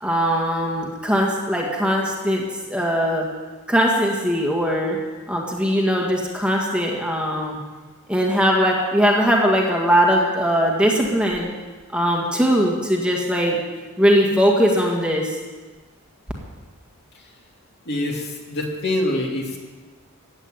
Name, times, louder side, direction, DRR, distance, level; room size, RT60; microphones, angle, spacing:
voice 1, 0.0-2.4 2.7-3.3 3.7-5.0 5.3-7.6 8.1-11.5 11.9-13.6 14.0-15.4, equal, 5° right, -1 dB, 1.9 m, -20 dB
voice 2, 17.9-19.6, left 1 dB, 50° left, 0 dB, 2.7 m, -25 dB
15.5 x 9.0 x 9.1 m, 1.3 s
head